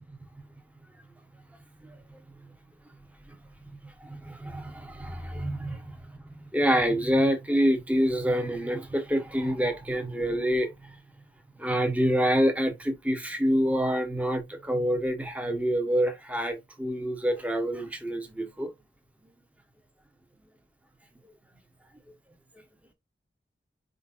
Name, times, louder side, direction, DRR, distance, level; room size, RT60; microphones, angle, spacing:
voice 1, 4.0-5.8 6.5-10.7 11.6-18.7, equal, 10° right, 0.8 m, -26 dB
4.4 x 3.9 x 2.4 m
head